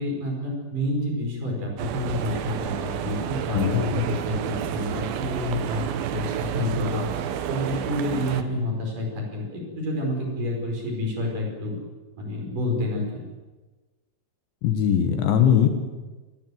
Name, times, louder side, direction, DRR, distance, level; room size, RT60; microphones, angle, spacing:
voice 1, 0.0-11.8 12.2-13.2, left 1 dB, 40° right, 1 dB, 6.6 m, -29 dB
sound 1, 1.8-8.4, right 10 dB, 70° right, 2.3 m, -30 dB
voice 2, 3.5-3.8 14.6-15.7, left 9 dB, 70° left, 7 dB, 3.6 m, -20 dB
27.5 x 17.5 x 8.0 m, 1.2 s
omnidirectional pair, 5.7 m